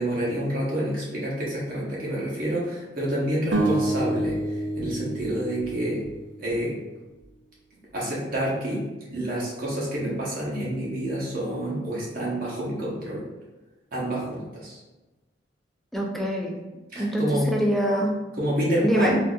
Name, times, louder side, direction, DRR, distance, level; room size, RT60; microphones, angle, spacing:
voice 1, 0.0-6.0 6.4-6.8 7.9-8.8 9.1-13.2 13.9-14.8 16.9-17.5 18.4-19.2, right 1 dB, 50° right, -6 dB, 0.8 m, -28 dB
sound 1, 3.5-6.7, right 1 dB, 85° right, 0.6 m, -28 dB
voice 2, 15.9-16.6 17.0-18.1 18.8-19.2, equal, ahead, -1 dB, 0.4 m, -24 dB
3.9 x 2.6 x 2.3 m, 1.1 s
head